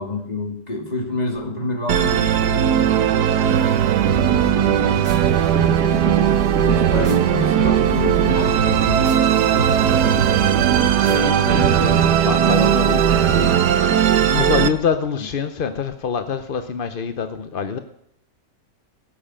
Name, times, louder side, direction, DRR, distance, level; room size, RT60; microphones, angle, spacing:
voice 1, 0.0-6.2 6.6-12.0 12.4-13.7, left 2 dB, 25° left, 2 dB, 2.3 m, -30 dB
Musical instrument, 1.9-14.7, right 9 dB, 75° right, 1.3 m, -18 dB
sound 1, 4.0-12.0, right 3 dB, 50° right, 2.0 m, -29 dB
voice 2, 11.0-13.0 13.3-13.5 13.9-17.8, left 6 dB, 55° left, 9 dB, 0.6 m, -25 dB
17.0 x 7.4 x 8.7 m, 0.75 s
omnidirectional pair, 1.8 m